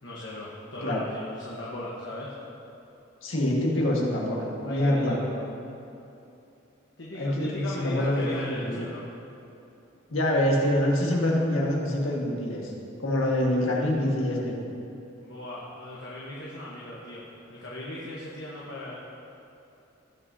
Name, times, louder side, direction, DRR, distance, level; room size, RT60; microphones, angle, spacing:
voice 1, 0.0-2.4 4.7-5.5 7.0-9.1 15.2-18.9, left 1 dB, 60° left, -5 dB, 1.2 m, -38 dB
voice 2, 3.2-5.2 7.2-8.9 10.1-12.7 13.0-14.6, left 1 dB, 80° left, -3 dB, 1.7 m, -25 dB
17.5 x 6.1 x 2.8 m, 2.8 s
head